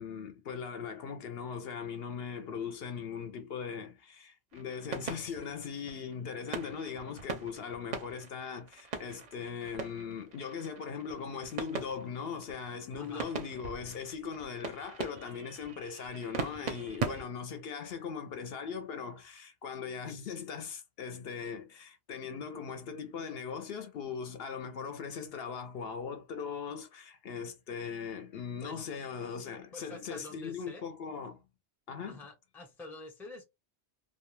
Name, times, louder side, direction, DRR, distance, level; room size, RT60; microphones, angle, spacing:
voice 1, 0.0-31.4 31.9-32.2, left 6 dB, 65° left, 0.8 m, -39 dB
sound 1, 4.5-17.2, right 5 dB, 50° right, 0.6 m, -41 dB
voice 2, 13.0-13.3 28.6-28.8 29.7-30.8 32.1-33.4, left 3 dB, 5° left, 0.5 m, -47 dB
2.2 x 2.2 x 3.0 m
omnidirectional pair, 1.1 m